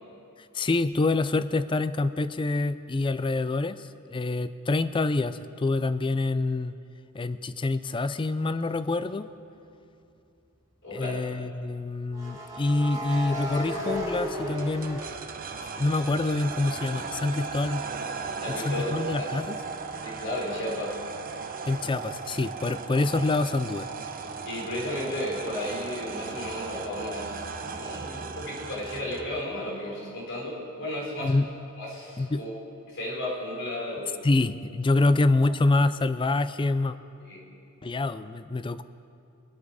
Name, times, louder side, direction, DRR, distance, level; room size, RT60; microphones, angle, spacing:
voice 1, 0.5-6.7 7.1-9.3 10.9-15.0 15.8-17.9 18.6-19.6 21.7-23.9 31.2-31.5 32.2-32.4 34.2-37.0 37.8-38.8, left 2 dB, 25° left, 13 dB, 0.4 m, -26 dB
sound 1, 8.8-9.0 12.1-16.0 16.4-20.0, equal, 15° right, 2.2 m, -36 dB
voice 2, 10.8-11.2 18.4-19.3 20.0-21.0 24.4-31.3 31.8-32.6 32.9-34.1 37.2-37.4, left 1 dB, 60° left, -3 dB, 4.3 m, -34 dB
sound 2, 14.6-29.4, right 5 dB, 40° right, 0.7 m, -37 dB
23.5 x 8.5 x 4.9 m, 2.6 s
head